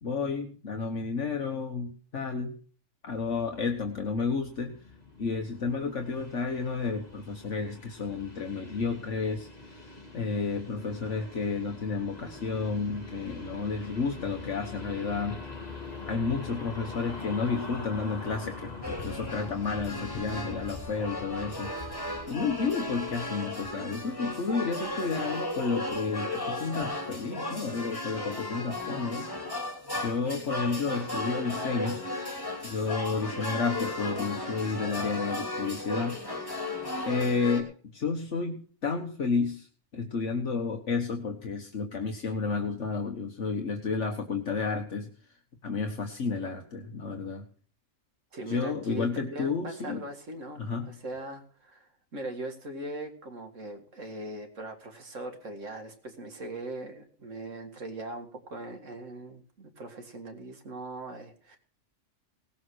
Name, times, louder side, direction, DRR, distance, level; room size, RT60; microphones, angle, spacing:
voice 1, 0.0-2.5 3.0-4.7 5.2-9.8 10.1-15.4 16.1-21.7 22.3-29.3 30.0-32.0 32.6-36.2 37.0-39.7 39.9-45.1 45.6-47.4 48.5-50.0 50.6-50.9, left 4 dB, 70° left, 3 dB, 1.6 m, -31 dB
sound 1, 3.1-22.7, left 3 dB, 30° left, 2.8 m, -44 dB
sound 2, 18.8-37.6, left 1 dB, 15° left, 3.1 m, -35 dB
voice 2, 48.3-61.6, right 2 dB, 80° right, 5 dB, 2.3 m, -40 dB
18.5 x 7.4 x 6.2 m, 0.43 s
omnidirectional pair, 1.3 m